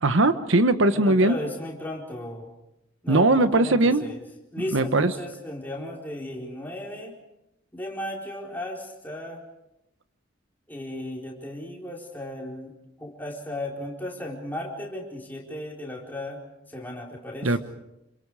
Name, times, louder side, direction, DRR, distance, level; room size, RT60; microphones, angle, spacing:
voice 1, 0.0-1.3 3.1-4.0 4.7-5.1 17.4-17.6, right 2 dB, 70° right, 10 dB, 1.2 m, -20 dB
voice 2, 0.9-2.5 3.0-4.2 4.5-7.2 7.7-9.4 10.7-16.4 16.7-17.6, left 1 dB, 10° left, -2 dB, 4.3 m, -35 dB
28.0 x 25.5 x 4.9 m, 0.88 s
head